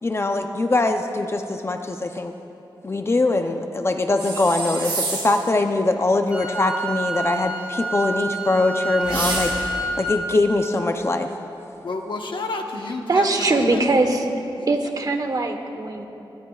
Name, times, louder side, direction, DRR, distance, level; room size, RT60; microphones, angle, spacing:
voice 1, 0.0-2.3 2.8-11.3, left 2 dB, 30° left, 5 dB, 0.6 m, -22 dB
sound 1, 4.2-5.5 9.0-9.9, right 3 dB, 70° right, 2.2 m, -28 dB
Wind instrument woodwind instrument, 6.3-10.2, right 1 dB, 15° right, 1.8 m, -29 dB
voice 2, 11.8-13.9 14.6-14.7, left 3 dB, 70° left, 3 dB, 1.2 m, -30 dB
voice 3, 13.1-14.3 14.7-16.1, right 3 dB, 45° right, 5 dB, 1.1 m, -21 dB
22.5 x 18.5 x 2.4 m, 2.9 s
wide cardioid pair, 135°, 9 cm